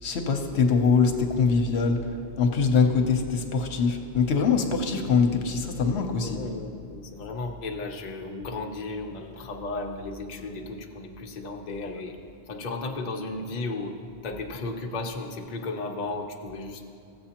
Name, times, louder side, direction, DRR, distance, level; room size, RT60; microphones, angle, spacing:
voice 1, 0.0-6.4, left 5 dB, 75° left, 4 dB, 1.0 m, -23 dB
voice 2, 6.2-12.2 12.5-13.9 14.2-16.8, left 3 dB, 45° left, 2 dB, 0.7 m, -34 dB
15.0 x 7.8 x 2.9 m, 2.4 s
omnidirectional pair, 1.1 m